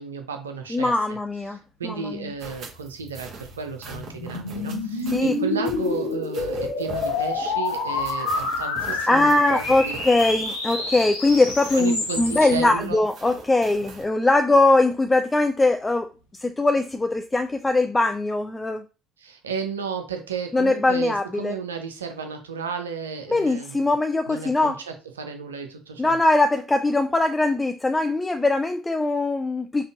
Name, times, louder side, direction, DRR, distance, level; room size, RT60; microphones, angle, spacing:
voice 1, 0.0-1.2 1.8-10.0 11.7-13.0 19.2-23.9 24.3-26.2, right 6 dB, 80° right, 6 dB, 0.5 m, -33 dB
voice 2, 0.7-1.6 1.8-2.3 5.1-5.3 8.2-8.4 9.1-16.1 16.4-18.8 20.5-21.6 23.3-24.8 26.0-29.9, left 2 dB, 15° left, 7 dB, 0.4 m, -21 dB
sound 1, 2.4-14.1, right 3 dB, 50° right, 1.1 m, -42 dB
sound 2, 3.0-12.7, left 3 dB, 75° left, 0.8 m, -28 dB
5.1 x 2.5 x 2.4 m, 0.32 s
figure-of-eight pair, 55°, 0 cm